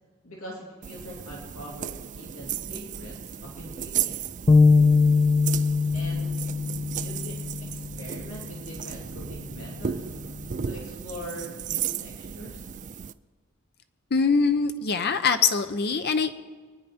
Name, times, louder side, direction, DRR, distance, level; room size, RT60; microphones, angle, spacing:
voice 1, 0.2-4.2 5.9-6.3 6.9-10.1 10.6-12.6, equal, 90° left, -3 dB, 3.1 m, -42 dB
sound 1, 0.8-13.1, right 8 dB, 35° right, 0.4 m, -35 dB
sound 2, 4.5-8.0, left 4 dB, 25° left, 0.4 m, -21 dB
voice 2, 14.1-16.3, left 5 dB, 50° left, 8 dB, 0.7 m, -23 dB
23.0 x 10.0 x 4.3 m, 1.5 s
head